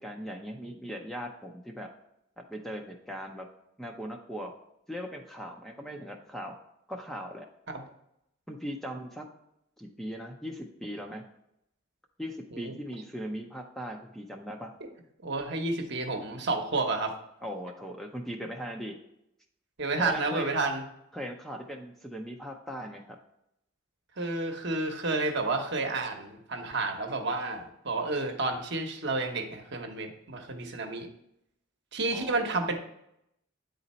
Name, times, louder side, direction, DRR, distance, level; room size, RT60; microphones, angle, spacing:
voice 1, 0.0-1.9 2.5-3.5 3.8-4.5 4.9-6.5 6.9-7.5 8.5-9.2 9.8-11.2 12.2-14.7 17.4-19.0 20.0-20.5 21.1-23.2 32.1-32.4, equal, ahead, 2 dB, 0.5 m, -39 dB
voice 2, 15.2-17.1 19.8-20.8 24.2-31.1 31.9-32.7, right 3 dB, 55° right, 4 dB, 1.0 m, -30 dB
9.1 x 4.0 x 4.2 m, 0.78 s
head